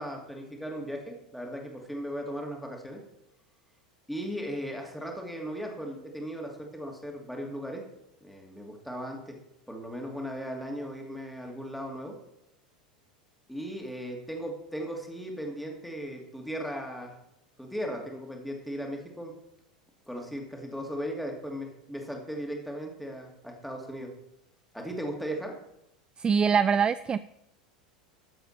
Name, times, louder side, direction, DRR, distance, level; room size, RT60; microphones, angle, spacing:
voice 1, 0.0-3.0 4.1-7.8 8.2-9.4 9.7-12.1 13.5-17.2 17.6-19.3 20.1-24.1 24.7-25.5, equal, ahead, 1 dB, 2.5 m, -37 dB
voice 2, 26.2-27.2, right 6 dB, 20° right, 15 dB, 0.3 m, -23 dB
13.0 x 7.7 x 4.4 m, 0.83 s
figure-of-eight pair, 80°, 4 cm